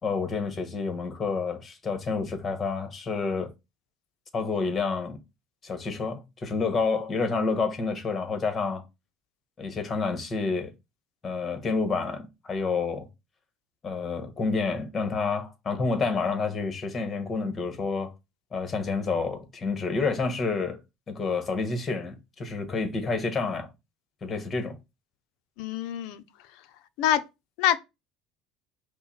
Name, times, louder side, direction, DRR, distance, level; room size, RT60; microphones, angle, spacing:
voice 1, 0.0-3.5 4.3-5.2 5.6-8.8 9.6-10.7 11.2-13.1 13.8-18.1 18.5-20.8 21.1-23.7 24.2-24.8, left 4 dB, 35° left, 1.5 m, -29 dB
voice 2, 25.6-26.2 27.0-27.2 27.6-27.8, left 11 dB, 70° left, 0.6 m, -25 dB
5.5 x 2.2 x 4.3 m
hypercardioid pair, 75°, 0 cm